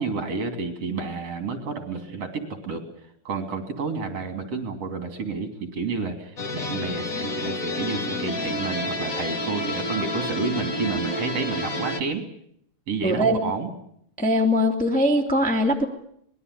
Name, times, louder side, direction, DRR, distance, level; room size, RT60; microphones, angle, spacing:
voice 1, 0.0-2.8 3.3-12.3 12.9-13.7, right 4 dB, 55° right, 6 dB, 3.9 m, -30 dB
sound 1, 6.4-12.0, left 1 dB, 35° left, 1.7 m, -29 dB
voice 2, 13.0-13.4 14.2-15.8, equal, 5° left, 2 dB, 2.2 m, -21 dB
25.0 x 20.5 x 8.3 m, 0.69 s
omnidirectional pair, 3.5 m